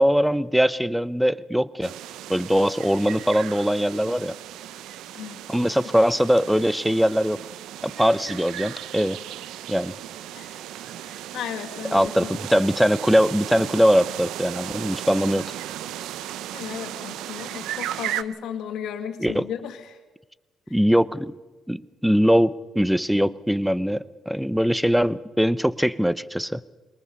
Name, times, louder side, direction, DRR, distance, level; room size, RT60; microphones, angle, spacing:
voice 1, 0.0-1.9 2.3-4.3 5.5-7.4 7.8-9.2 9.7-9.9 11.9-15.4 19.2-19.5 20.7-21.3 21.7-26.6, equal, ahead, 18 dB, 0.7 m, -21 dB
sound 1, 1.8-18.2, right 12 dB, 90° right, 0.6 m, -36 dB
voice 2, 11.0-12.4 16.5-20.0, left 8 dB, 80° left, 5 dB, 2.1 m, -35 dB
21.5 x 19.5 x 7.0 m, 1.2 s
cardioid pair, 90°, 0 cm